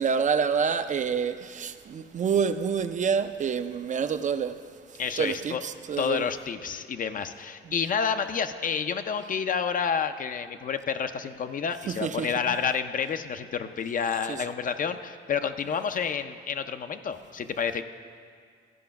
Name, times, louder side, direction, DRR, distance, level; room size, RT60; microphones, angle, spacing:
voice 1, 0.0-4.6 5.2-6.3 11.9-12.5 14.3-14.4, right 6 dB, 40° right, 0.4 m, -27 dB
voice 2, 5.0-5.6 6.0-17.8, left 7 dB, 45° left, 0.5 m, -29 dB
14.0 x 4.9 x 5.8 m
cardioid pair, 90°, 20 cm